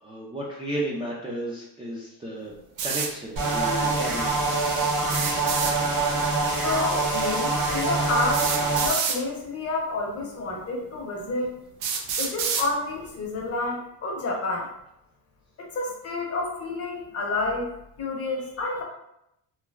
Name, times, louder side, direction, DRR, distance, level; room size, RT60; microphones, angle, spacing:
voice 1, 0.0-2.5 2.8-4.9, right 1 dB, 15° right, -6 dB, 0.3 m, -34 dB
sound 1, 2.8-3.1 5.0-5.8 7.2-7.3 8.3-9.2 10.2-10.3 11.0-11.1 11.8-12.7, right 6 dB, 90° right, 0.6 m, -27 dB
sound 2, 3.4-8.9, right 3 dB, 55° right, 1.0 m, -25 dB
voice 2, 6.6-8.5 8.8-11.5 12.2-14.7 15.6-17.7 18.0-18.8, left 3 dB, 35° left, -1 dB, 0.7 m, -29 dB
3.2 x 2.0 x 2.3 m, 0.80 s
cardioid pair, 110°, 41 cm